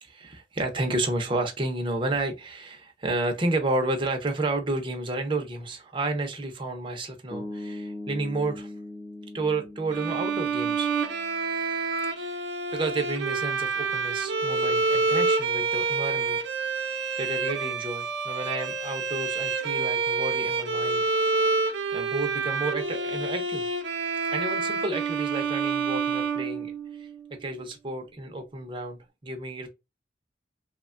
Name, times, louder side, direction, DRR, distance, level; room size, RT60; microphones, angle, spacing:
voice 1, 0.0-8.7 9.3-10.9 12.1-12.5 12.7-16.4 17.2-21.0 21.9-23.7 24.3-27.1 27.4-29.7, right 2 dB, 30° right, 0.5 m, -31 dB
sound 1, 7.3-11.5, left 1 dB, 20° left, 0.5 m, -40 dB
Bowed string instrument, 9.9-27.1, right 4 dB, 75° right, 0.6 m, -28 dB
3.0 x 2.1 x 2.4 m
head